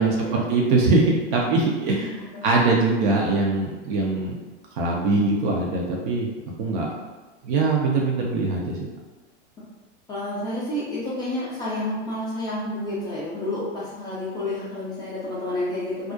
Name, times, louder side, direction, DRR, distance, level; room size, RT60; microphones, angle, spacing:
voice 1, 0.0-4.4 4.7-6.3 6.6-6.9 7.4-8.9, right 3 dB, 50° right, -2 dB, 0.5 m, -22 dB
voice 2, 10.1-16.1, left 1 dB, 10° left, -9 dB, 0.3 m, -30 dB
2.4 x 2.0 x 2.6 m, 1.2 s
hypercardioid pair, 105°, 36 cm